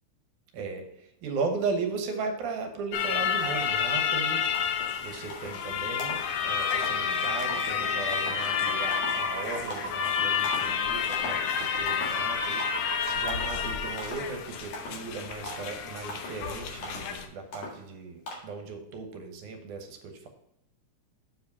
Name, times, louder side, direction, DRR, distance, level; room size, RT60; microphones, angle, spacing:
voice 1, 0.5-4.4 5.0-20.3, right 4 dB, 75° right, 5 dB, 2.5 m, -36 dB
sound 1, 2.9-17.2, left 7 dB, 75° left, 1.4 m, -30 dB
sound 2, 4.1-4.2 4.5-4.9 5.3-5.6 6.0-6.3 6.7-7.0 7.4-7.7 8.1-8.5 8.9-9.2 9.7-10.0 10.4-10.8 11.1-11.5 11.9-12.3 12.6-12.9 13.3-13.6 14.0-14.3 14.7-15.1 15.5-15.8 16.1-16.4 16.8-17.1 17.5-17.9 18.3-18.4, left 1 dB, 55° left, 2.8 m, -40 dB
sound 3, 6.1-14.6, right 2 dB, 35° right, 2.4 m, -41 dB
7.4 x 4.9 x 5.4 m, 0.80 s
omnidirectional pair, 3.6 m